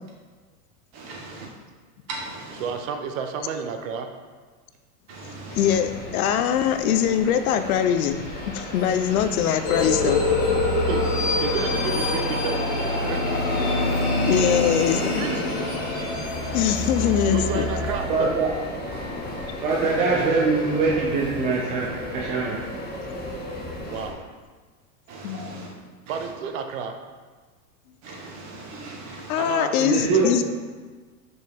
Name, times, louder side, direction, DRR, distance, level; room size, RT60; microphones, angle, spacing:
voice 1, 0.9-1.5 2.1-2.7 5.1-5.8 16.4-16.9 23.9-24.0 25.1-25.7 26.1-26.3 28.0-29.6, right 3 dB, 35° right, -3 dB, 1.7 m, -39 dB
voice 2, 2.6-4.1 10.9-11.1 11.4-13.4 15.1-15.5 17.3-18.4 23.8-24.2 26.1-27.0 29.4-29.8, right 6 dB, 60° right, 5 dB, 0.8 m, -31 dB
sound 1, 5.5-24.1, left 1 dB, 20° left, 1.1 m, -34 dB
voice 3, 5.6-8.2 8.5-10.2 14.3-15.3 16.5-17.7 25.2-25.7 29.3-30.4, left 9 dB, 70° left, 10 dB, 0.6 m, -22 dB
sound 2, 9.6-17.9, left 2 dB, 40° left, 1.9 m, -25 dB
voice 4, 18.1-18.5 19.6-22.6 29.8-30.4, right 4 dB, 15° right, -3 dB, 0.4 m, -23 dB
6.2 x 5.3 x 3.5 m, 1.4 s
supercardioid pair, 145°, 45 cm